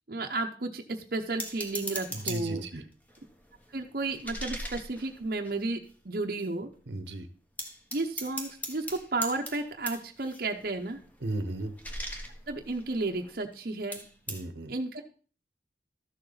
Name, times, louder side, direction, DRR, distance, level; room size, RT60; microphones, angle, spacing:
voice 1, 0.1-2.6 3.7-6.7 7.9-11.0 12.5-14.0 14.7-15.0, right 2 dB, 50° right, 3 dB, 0.8 m, -33 dB
sound 1, 1.4-2.7 3.1-5.9 6.4-6.5 6.7-7.1 7.6-13.6 13.9-14.4, equal, 10° left, 1.0 m, -41 dB
voice 2, 2.1-2.8 6.9-7.3 11.2-11.7 14.3-14.7, right 2 dB, 75° right, 10 dB, 0.9 m, -35 dB
13.0 x 6.8 x 4.0 m, 0.40 s
head